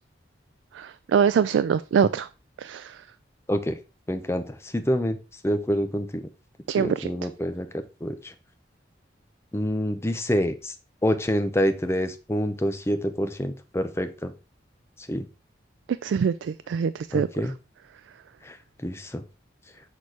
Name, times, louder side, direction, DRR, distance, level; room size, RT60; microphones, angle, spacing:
voice 1, 0.7-2.3 2.6-3.0 6.7-7.1 16.0-17.3, right 7 dB, 85° right, 0.3 m, -24 dB
voice 2, 3.5-3.8 4.1-5.2 5.4-6.3 6.7-7.7 8.0-8.3 9.5-10.7 11.0-14.3 15.1-15.3 17.1-17.5 18.4-18.6 18.8-19.2, equal, 15° left, 0.6 m, -27 dB
6.4 x 4.2 x 4.7 m
head